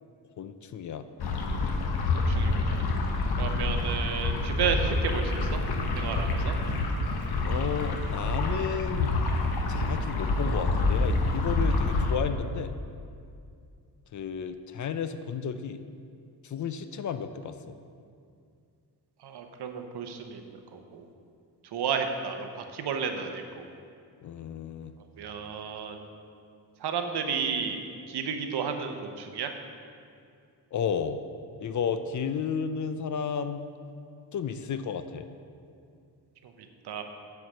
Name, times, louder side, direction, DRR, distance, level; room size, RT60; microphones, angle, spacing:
voice 1, 0.4-1.1 7.4-9.2 9.7-12.8 14.1-15.8 16.4-17.8 24.2-24.9 30.7-31.2 31.6-33.7 34.3-35.3, left 7 dB, 50° left, 10 dB, 0.4 m, -32 dB
sound 1, 1.2-12.2, left 2 dB, 65° left, 1.0 m, -27 dB
voice 2, 2.3-2.8 3.4-5.6 5.9-6.5 19.2-21.1 21.7-23.7 25.2-26.0 26.8-27.8 28.1-29.5 36.4-36.5 36.8-37.0, right 6 dB, 75° right, 5 dB, 0.9 m, -32 dB
9.7 x 4.8 x 6.6 m, 2.3 s
wide cardioid pair, 160°, 40 cm